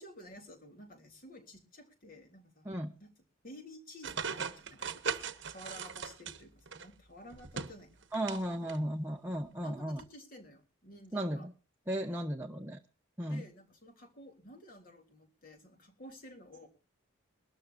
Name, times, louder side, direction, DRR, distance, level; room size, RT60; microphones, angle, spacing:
voice 1, 0.0-3.1 3.4-8.1 9.6-11.5 13.3-16.7, left 1 dB, 40° left, 4 dB, 3.4 m, -53 dB
sound 1, 4.0-6.9 7.3-8.4 8.7-8.8 10.0-10.1, right 6 dB, 55° right, 1.2 m, -39 dB
voice 2, 8.1-10.0 11.1-11.5 11.9-12.8 13.2-13.4, right 1 dB, 10° right, 1 dB, 0.9 m, -35 dB
22.0 x 13.0 x 2.6 m, 0.34 s
head